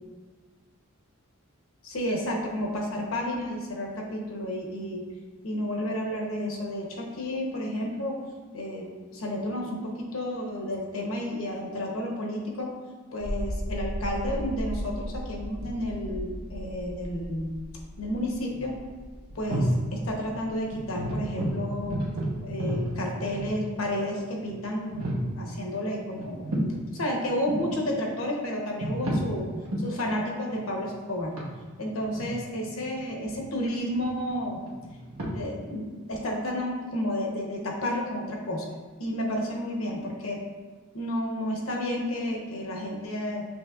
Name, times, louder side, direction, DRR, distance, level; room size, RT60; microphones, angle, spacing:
voice 1, 1.8-5.0 5.4-8.2 8.5-12.7 13.1-17.6 18.0-18.7 19.3-22.0 22.4-26.4 26.9-29.5 29.8-31.4 31.8-34.6 35.3-38.7 39.0-40.4 40.9-43.5, left 1 dB, 70° left, 0 dB, 0.9 m, -31 dB
sound 1, 13.2-23.3, equal, 5° right, 0.6 m, -37 dB
sound 2, 15.6-16.4 18.2-18.3 18.5-18.7 19.3-19.8 20.2-20.3 20.7-23.9 24.4-24.5 24.9-25.3 26.2-26.8 27.2-27.8 28.5-29.3 29.6-29.9 30.5-33.5 33.9-35.2, right 1 dB, 85° right, 1.0 m, -31 dB
7.1 x 3.0 x 2.4 m, 1.4 s
head